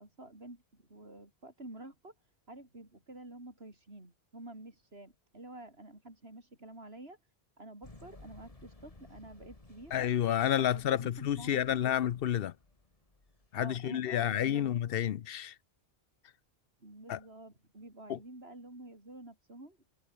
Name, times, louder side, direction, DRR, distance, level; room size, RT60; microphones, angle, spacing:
voice 1, 0.0-2.1 2.5-7.2 7.6-9.9 10.4-12.0 13.6-14.7 16.8-19.8, right 1 dB, 70° right, 6.1 m, -49 dB
sound 1, 7.8-13.9 14.4-14.5, left 2 dB, 35° left, 2.4 m, -57 dB
voice 2, 9.9-12.5 13.5-15.5 17.1-17.2 18.1-18.2, left 10 dB, 65° left, 0.8 m, -30 dB
omnidirectional pair, 1.1 m